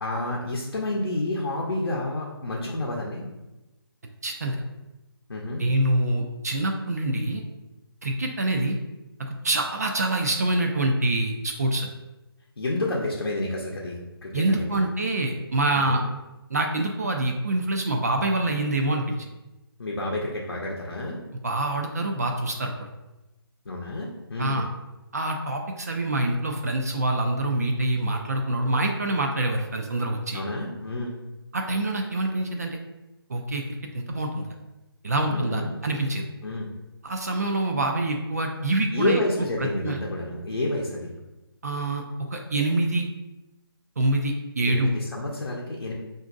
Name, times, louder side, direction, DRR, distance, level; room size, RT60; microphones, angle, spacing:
voice 1, 0.0-3.2 5.3-5.6 12.6-14.8 15.7-16.0 19.8-21.2 23.7-24.6 30.3-31.2 35.3-35.7 36.4-36.7 38.9-41.2 44.6-45.9, left 1 dB, 65° left, -3 dB, 0.7 m, -29 dB
voice 2, 4.2-4.6 5.6-7.4 8.0-8.8 9.2-11.9 14.3-16.0 16.5-19.2 21.4-22.7 24.4-24.7 25.1-30.4 31.5-32.8 33.3-33.6 33.9-34.4 35.0-36.2 37.0-39.2 39.8-40.0 41.6-42.0 42.3-43.1 44.0-44.9, right 2 dB, 40° right, 2 dB, 0.4 m, -25 dB
4.9 x 2.5 x 2.5 m, 1.0 s
figure-of-eight pair, 150°, 13 cm